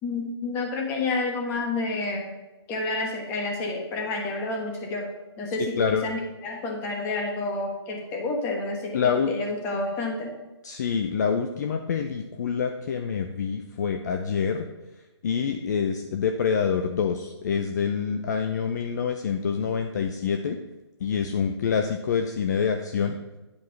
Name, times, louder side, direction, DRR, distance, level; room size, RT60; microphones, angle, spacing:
voice 1, 0.0-2.3 2.7-5.1 5.4-10.3, left 2 dB, 15° left, 2 dB, 1.2 m, -29 dB
voice 2, 8.9-9.3 10.6-14.7 15.2-20.6 21.0-23.2, left 6 dB, 40° left, 5 dB, 0.6 m, -26 dB
9.5 x 4.8 x 5.7 m, 1.1 s
hypercardioid pair, 160°, 14 cm